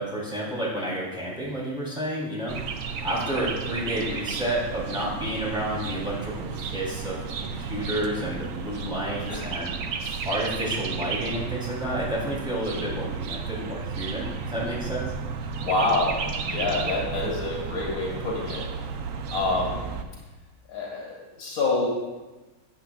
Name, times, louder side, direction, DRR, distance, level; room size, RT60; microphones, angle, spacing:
voice 1, 0.0-2.6 3.0-7.2 7.5-9.7 10.2-15.1, right 1 dB, 5° right, -7 dB, 3.4 m, -30 dB
sound 1, 2.5-20.0, right 5 dB, 65° right, 1.0 m, -33 dB
voice 2, 15.6-16.1 16.4-18.6 19.3-19.9 20.7-21.9, left 2 dB, 75° left, -4 dB, 2.4 m, -27 dB
14.0 x 8.8 x 2.4 m, 1.2 s
omnidirectional pair, 1.6 m